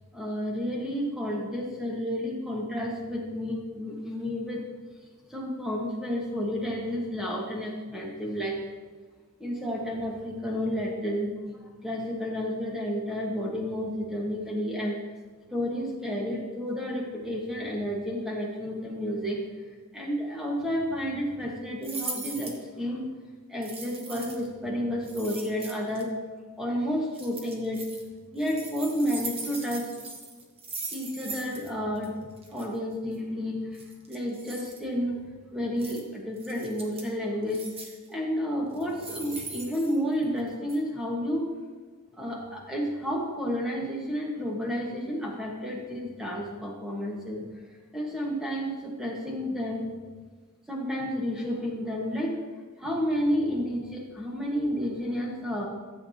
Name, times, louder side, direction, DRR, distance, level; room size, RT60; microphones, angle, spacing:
voice 1, 0.1-4.6 5.3-8.6 9.4-11.3 11.6-15.0 15.5-19.4 19.9-23.1 23.5-26.2 26.6-27.8 28.3-29.9 30.9-32.2 32.5-35.2 35.5-37.6 38.1-41.5 42.2-47.4 47.9-50.0 50.7-52.4 52.8-55.7, equal, 5° right, -3 dB, 1.6 m, -31 dB
sound 1, 21.8-22.6 23.6-24.5 25.0-26.0 27.1-28.0 28.4-31.7 32.0-32.1 32.4-32.7 33.7-34.8 35.8-36.0 36.4-37.1 37.5-38.1 38.7-40.4 40.7-40.8, right 3 dB, 25° right, 1.1 m, -40 dB
13.5 x 7.7 x 2.9 m, 1.4 s
head